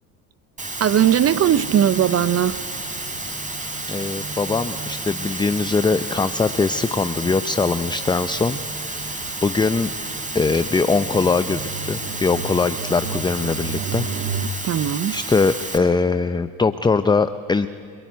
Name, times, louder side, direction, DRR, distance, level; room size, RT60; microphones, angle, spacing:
Water, 0.6-15.8, right 2 dB, 15° right, 4.8 m, -31 dB
voice 1, 0.8-2.6 14.6-15.2, right 10 dB, 35° right, 16 dB, 0.7 m, -18 dB
sound 1, 0.9-14.5, right 5 dB, 80° right, 1.6 m, -36 dB
voice 2, 3.9-9.9 10.3-14.1 15.1-17.7, left 4 dB, 10° left, 11 dB, 0.6 m, -22 dB
29.5 x 20.5 x 9.4 m, 2.4 s
hypercardioid pair, 75°, 45 cm